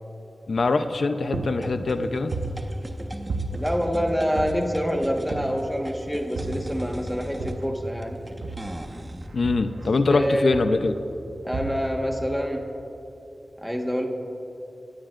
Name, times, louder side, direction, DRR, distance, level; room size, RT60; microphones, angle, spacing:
voice 1, 0.5-2.3 9.3-10.9, left 3 dB, 70° left, 8 dB, 0.7 m, -23 dB
sound 1, 0.6-1.0 1.3-3.0 3.3-4.9 5.3-5.9 6.4-7.9 8.4-10.2 10.5-11.0 11.5-12.1, right 2 dB, 90° right, 1.2 m, -33 dB
sound 2, 1.6-9.3, right 1 dB, 20° right, 1.3 m, -39 dB
voice 2, 3.6-8.2 10.1-10.7 11.4-12.7 13.6-14.1, equal, ahead, 1 dB, 1.5 m, -26 dB
27.5 x 18.0 x 2.6 m, 3.0 s
wide cardioid pair, 75°, 0 cm